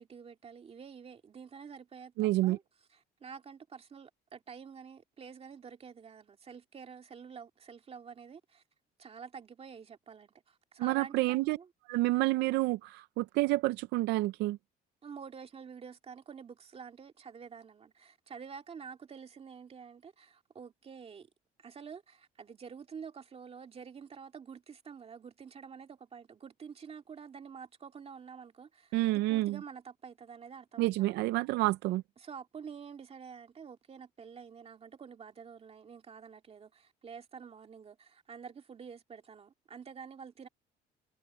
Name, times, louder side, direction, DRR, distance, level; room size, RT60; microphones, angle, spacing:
voice 1, 0.0-2.6 2.9-8.6 9.0-11.7 15.0-21.3 21.6-31.2 32.2-40.5, right 6 dB, 35° right, 2.3 m, -48 dB
voice 2, 2.2-2.6 10.8-11.6 11.9-14.6 28.9-29.6 30.8-32.0, right 19 dB, 85° right, 0.5 m, -29 dB
cardioid pair, 110°, 17 cm